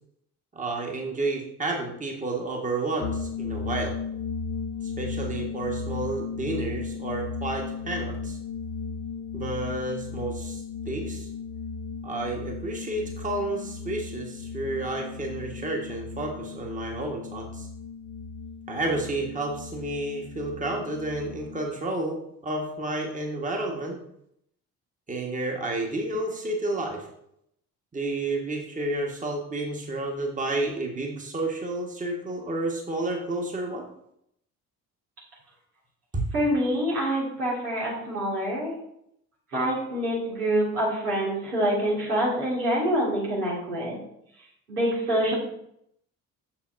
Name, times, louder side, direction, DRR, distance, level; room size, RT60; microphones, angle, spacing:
voice 1, 0.5-3.9 4.8-8.4 9.3-11.3 12.0-17.7 18.7-24.0 25.1-27.1 27.9-33.9 36.1-36.3, right 2 dB, 15° right, 1 dB, 1.4 m, -31 dB
sound 1, 3.0-21.7, left 5 dB, 45° left, 0.8 m, -35 dB
voice 2, 36.3-38.7 39.5-44.0 44.7-45.3, equal, 80° right, -5 dB, 2.1 m, -26 dB
7.2 x 7.0 x 2.6 m, 0.75 s
figure-of-eight pair, 50°, 44 cm